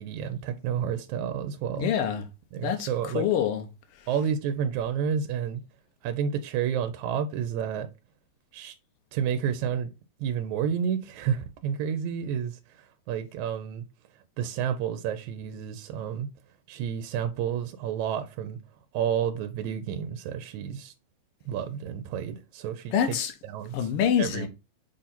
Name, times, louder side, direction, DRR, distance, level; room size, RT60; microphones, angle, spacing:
voice 1, 0.0-1.9 2.5-3.3 4.1-5.6 6.0-7.9 8.5-8.7 9.1-9.9 10.2-13.8 14.4-16.3 16.7-18.6 18.9-20.9 21.5-23.2 23.5-23.9 24.2-24.5, right 8 dB, 80° right, 2.0 m, -30 dB
voice 2, 1.8-2.2 2.6-3.7 3.9-4.1 22.9-23.3 23.7-24.5, left 9 dB, 70° left, 1.4 m, -26 dB
6.2 x 3.8 x 4.2 m
omnidirectional pair, 3.4 m